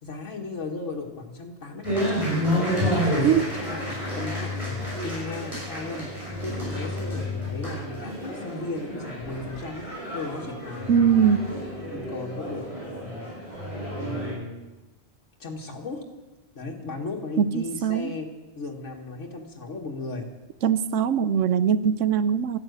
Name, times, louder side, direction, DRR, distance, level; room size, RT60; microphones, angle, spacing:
voice 1, 0.0-6.1 6.4-11.1 11.9-13.3 14.0-14.7 15.4-16.0 16.5-18.3 18.6-20.3, left 3 dB, 90° left, 0 dB, 2.2 m, -36 dB
sound 1, 1.8-14.3, equal, 25° right, 6.3 m, -30 dB
voice 2, 10.9-11.5 17.4-18.1 20.6-22.6, right 8 dB, 85° right, 15 dB, 1.1 m, -21 dB
13.0 x 11.5 x 8.1 m, 1.1 s
omnidirectional pair, 1.2 m